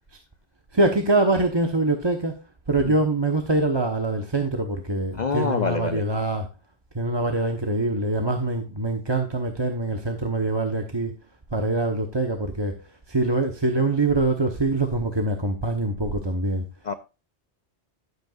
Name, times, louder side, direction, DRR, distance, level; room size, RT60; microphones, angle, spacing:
voice 1, 0.7-6.5 6.9-11.2 11.5-16.6, right 2 dB, 25° right, 0.9 m, -24 dB
voice 2, 5.2-6.0 16.9-17.0, left 5 dB, 50° left, 0.6 m, -25 dB
12.0 x 7.9 x 2.4 m
omnidirectional pair, 1.1 m